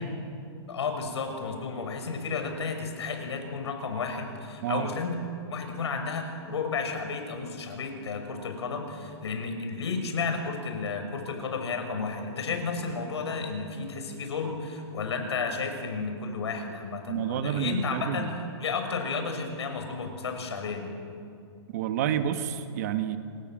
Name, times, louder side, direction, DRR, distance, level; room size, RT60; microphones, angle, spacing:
voice 1, 0.7-5.2 5.5-18.3 18.6-20.9, left 4 dB, 70° left, 5 dB, 6.2 m, -32 dB
voice 2, 4.6-5.0 17.1-18.3 21.7-23.2, right 9 dB, 35° right, 8 dB, 1.5 m, -29 dB
29.0 x 25.0 x 7.7 m, 2.4 s
hypercardioid pair, 170°, 15 cm